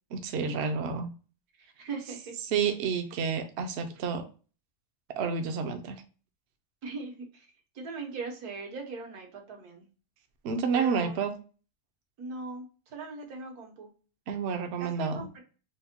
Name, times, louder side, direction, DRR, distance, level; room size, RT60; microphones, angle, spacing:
voice 1, 0.1-1.1 2.5-4.2 5.2-6.0 10.4-11.3 14.3-15.3, right 5 dB, 65° right, 5 dB, 0.7 m, -30 dB
voice 2, 1.6-2.4 6.8-7.5 7.7-9.9 10.7-11.2 12.2-13.9 14.8-15.4, right 4 dB, 85° right, 2 dB, 1.5 m, -40 dB
4.6 x 2.1 x 2.7 m, 0.37 s
omnidirectional pair, 1.6 m